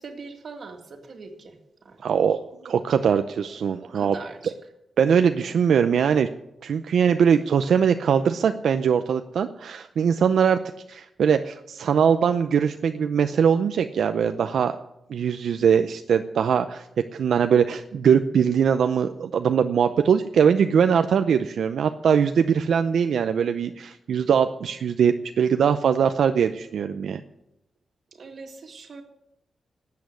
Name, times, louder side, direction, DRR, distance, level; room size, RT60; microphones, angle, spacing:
voice 1, 0.0-1.6 1.8-2.0 2.3-2.4 3.5-4.5 28.1-29.0, right 4 dB, 45° right, 5 dB, 2.0 m, -42 dB
voice 2, 2.0-2.4 2.6-4.1 5.0-6.3 6.6-10.6 10.9-14.8 15.1-16.9 17.1-27.2, right 7 dB, 75° right, 8 dB, 0.5 m, -21 dB
12.5 x 8.6 x 9.6 m, 0.86 s
wide cardioid pair, 180°, 0 cm